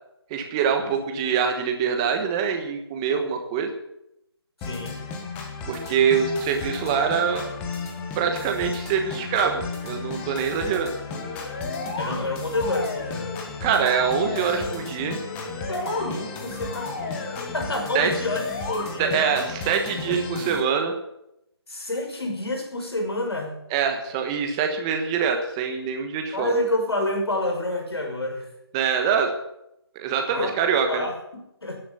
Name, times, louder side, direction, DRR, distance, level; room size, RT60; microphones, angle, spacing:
voice 1, 0.3-3.7 5.7-7.5 8.1-10.9 13.6-15.2 17.9-18.1 19.0-20.9 23.7-26.5 28.7-29.3 29.9-31.1, right 6 dB, 10° right, 5 dB, 1.2 m, -24 dB
voice 2, 4.6-5.0 12.0-13.3 15.7-19.4 21.7-23.6 26.3-28.5 30.3-30.5 30.9-31.8, left 1 dB, 70° left, 3 dB, 6.0 m, -29 dB
sound 1, 4.6-20.6, left 4 dB, 10° left, 1.2 m, -34 dB
sound 2, 11.1-12.2 12.5-13.5 13.7-14.8 15.2-16.1 16.5-17.5 18.1-18.8, left 3 dB, 35° left, 2.6 m, -34 dB
17.0 x 10.5 x 6.9 m, 0.84 s
figure-of-eight pair, 165°, 14 cm